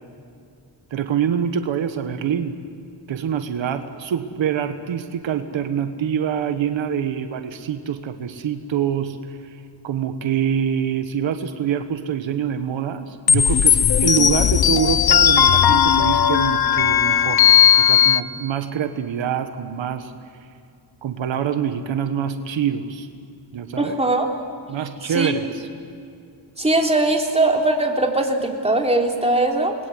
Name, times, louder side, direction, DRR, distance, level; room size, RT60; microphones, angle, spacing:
voice 1, 0.9-2.6 3.1-17.5 17.8-20.1 21.0-23.1 23.5-23.9 24.7-25.7, right 8 dB, 85° right, 8 dB, 1.4 m, -25 dB
sound 1, 13.3-18.2, left 8 dB, 55° left, 0.9 m, -16 dB
voice 2, 23.8-24.3 25.1-25.3 26.6-29.8, right 2 dB, 15° right, 1 dB, 3.5 m, -20 dB
28.5 x 21.5 x 7.9 m, 2.4 s
cardioid pair, 85°, 44 cm